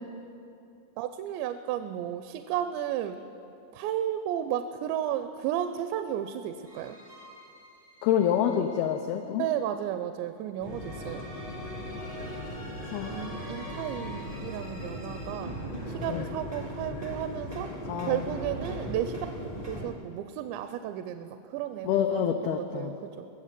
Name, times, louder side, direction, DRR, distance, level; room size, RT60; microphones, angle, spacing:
voice 1, 1.0-3.2 3.7-7.0 9.4-11.3 13.1-15.6 15.9-17.7 18.0-23.3, right 10 dB, 85° right, 9 dB, 2.8 m, -33 dB
sound 1, 6.6-8.9 10.6-19.8, equal, 35° right, 0.5 m, -43 dB
voice 2, 8.0-9.5 12.9-13.1 16.1-16.3 17.9-18.2 21.8-22.9, left 9 dB, 85° left, 5 dB, 2.1 m, -27 dB
sound 2, 10.6-19.9, equal, 70° left, 1.5 m, -39 dB
22.0 x 7.5 x 7.5 m, 2.7 s
omnidirectional pair, 5.1 m